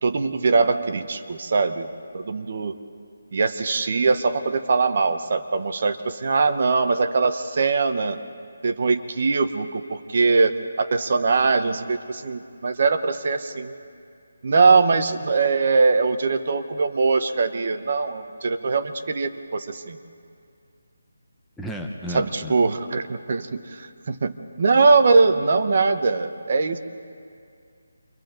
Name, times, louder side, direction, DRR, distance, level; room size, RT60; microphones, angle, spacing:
voice 1, 0.0-1.9 2.1-2.8 3.3-8.2 8.6-13.7 14.4-20.0 22.1-26.8, right 4 dB, 40° right, 8 dB, 0.9 m, -21 dB
voice 2, 21.6-22.6, left 1 dB, ahead, 0 dB, 0.7 m, -33 dB
29.0 x 24.0 x 3.9 m, 2.4 s
hypercardioid pair, 175°, 0 cm